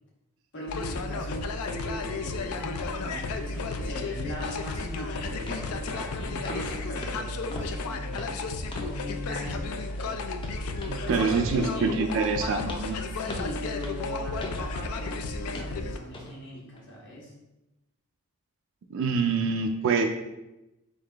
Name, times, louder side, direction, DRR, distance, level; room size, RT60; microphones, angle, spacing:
voice 1, 0.5-10.3 11.0-12.1 13.1-17.3, equal, 55° left, -4 dB, 1.3 m, -39 dB
sound 1, 0.7-16.0, left 3 dB, 75° left, 0.4 m, -33 dB
sound 2, 5.5-5.7 6.0-6.2 6.4-6.7 7.0-9.0 9.3-9.6 9.9-15.2 15.5-15.8 16.1-16.3 16.8-16.9, left 1 dB, 20° left, 0.5 m, -42 dB
voice 2, 10.9-13.0 18.9-20.1, right 5 dB, 60° right, 5 dB, 0.3 m, -26 dB
3.9 x 3.7 x 3.3 m, 0.97 s
head